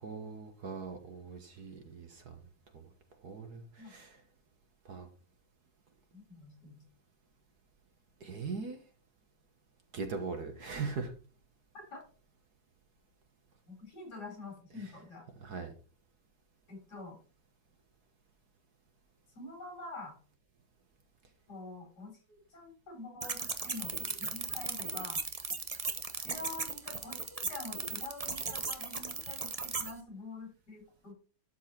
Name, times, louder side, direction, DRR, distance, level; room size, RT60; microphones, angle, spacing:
voice 1, 0.0-2.3 3.2-4.1 4.9-5.1 8.2-8.8 9.9-11.1 15.4-15.7, right 4 dB, 55° right, 6 dB, 1.7 m, -40 dB
voice 2, 6.1-6.8 11.9-12.0 13.7-15.2 16.7-17.2 19.3-20.2 21.5-22.2 22.5-25.2 26.2-31.1, left 3 dB, 55° left, 1 dB, 4.9 m, -46 dB
sound 1, 23.2-29.9, right 4 dB, 40° right, 0.5 m, -37 dB
12.5 x 4.8 x 4.4 m, 0.38 s
omnidirectional pair, 2.1 m